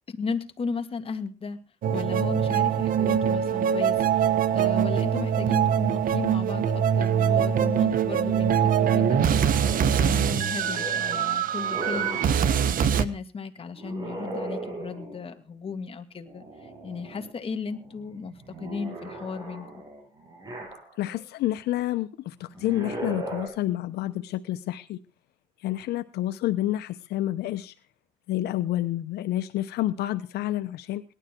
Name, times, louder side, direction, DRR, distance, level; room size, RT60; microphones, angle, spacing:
voice 1, 0.1-1.6 1.9-19.8, left 5 dB, 35° left, 7 dB, 2.2 m, -35 dB
sound 1, 1.8-13.0, right 8 dB, 55° right, 1.3 m, -23 dB
sound 2, 9.6-12.4 13.8-15.3 16.3-17.3 17.7-21.2 22.5-23.5, right 2 dB, 25° right, 7.8 m, -38 dB
voice 2, 21.0-25.0 25.6-27.7 28.3-31.0, left 14 dB, 75° left, 11 dB, 1.0 m, -29 dB
18.5 x 12.5 x 4.5 m, 0.34 s
cardioid pair, 110°, 17 cm